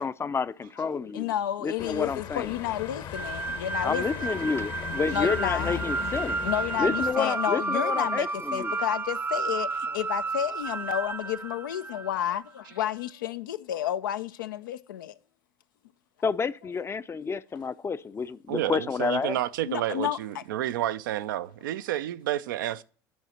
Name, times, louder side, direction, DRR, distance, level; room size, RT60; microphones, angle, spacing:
voice 1, 0.0-1.3 1.6-2.5 3.8-6.4 6.8-8.7 16.2-19.4, left 5 dB, 25° left, 0.5 m, -29 dB
voice 2, 1.1-4.4 5.1-5.8 6.4-15.2 19.7-20.4, left 11 dB, 85° left, 0.4 m, -31 dB
sound 1, 1.8-7.1, left 7 dB, 55° left, 1.0 m, -38 dB
sound 2, 3.1-12.3, right 3 dB, 20° right, 0.6 m, -32 dB
voice 3, 18.5-22.8, right 13 dB, 85° right, 0.4 m, -30 dB
9.4 x 4.9 x 4.2 m
hypercardioid pair, 70°, 10 cm